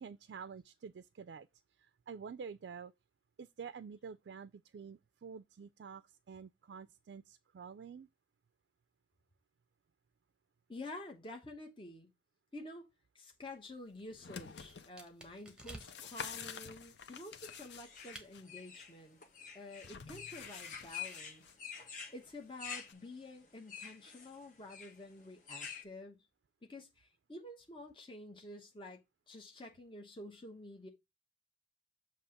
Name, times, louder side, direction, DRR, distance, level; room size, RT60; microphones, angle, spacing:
voice 1, 0.0-1.5 1.8-2.9 3.4-8.1, right 6 dB, 70° right, 0.4 m, -49 dB
voice 2, 10.7-12.1 12.5-12.8 13.1-19.2 19.5-21.5 22.1-26.2 26.6-29.0 29.3-30.9, left 2 dB, 30° left, 1.1 m, -50 dB
sound 1, 13.3-16.2 16.9-18.3, right 2 dB, 5° right, 1.1 m, -55 dB
sound 2, 14.0-14.9 15.5-18.4 19.8-21.5 22.9-23.0, left 6 dB, 70° left, 0.7 m, -48 dB
sound 3, 17.4-25.8, left 7 dB, 45° left, 1.4 m, -48 dB
6.9 x 2.9 x 5.7 m
head